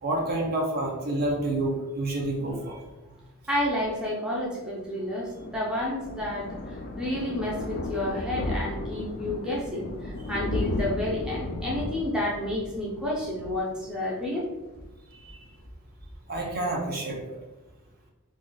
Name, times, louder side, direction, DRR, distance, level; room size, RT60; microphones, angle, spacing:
voice 1, 0.0-2.8 15.2-15.4 16.3-17.2, right 1 dB, 45° right, -1 dB, 0.6 m, -28 dB
voice 2, 3.5-14.5, left 1 dB, 5° right, -5 dB, 0.6 m, -30 dB
Thunder, 5.0-14.4 14.7-15.0 15.3-15.4 15.6-15.7, left 1 dB, 40° left, 0.3 m, -34 dB
2.5 x 2.4 x 3.7 m, 1.1 s
head